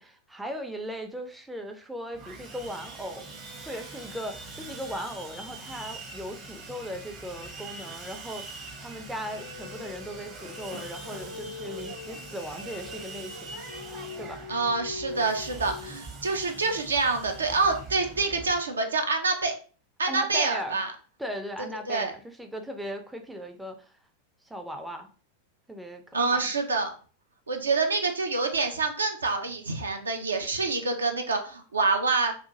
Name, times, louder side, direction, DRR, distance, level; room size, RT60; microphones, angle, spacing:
voice 1, 0.0-13.6 14.2-14.4 20.1-20.8 21.2-23.9 24.4-25.1 25.7-26.4, equal, 5° right, 4 dB, 0.4 m, -38 dB
Sawing, 2.1-18.6, right 3 dB, 30° right, 0.7 m, -43 dB
sound 1, 9.2-15.9, left 4 dB, 90° left, 0.5 m, -42 dB
voice 2, 14.5-19.5 20.0-20.9 21.9-22.1 26.1-26.9 27.5-32.3, right 3 dB, 75° right, 4 dB, 0.4 m, -26 dB
2.4 x 2.4 x 2.8 m, 0.40 s
figure-of-eight pair, 90°, 0 cm